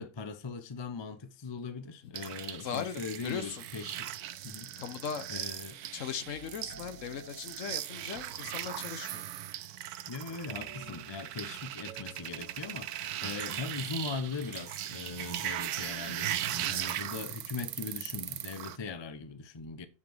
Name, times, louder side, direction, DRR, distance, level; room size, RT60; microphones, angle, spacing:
voice 1, 0.0-4.1 4.4-4.7 5.3-5.8 10.1-19.9, left 4 dB, 30° left, 0.5 m, -40 dB
sound 1, 2.1-18.8, right 12 dB, 85° right, 1.1 m, -38 dB
voice 2, 2.6-3.6 4.8-5.3 5.9-9.2, left 7 dB, 65° left, 1.0 m, -38 dB
sound 2, 6.3-9.2 10.5-13.8, right 4 dB, 60° right, 1.2 m, -54 dB
8.3 x 5.1 x 4.6 m
omnidirectional pair, 1.6 m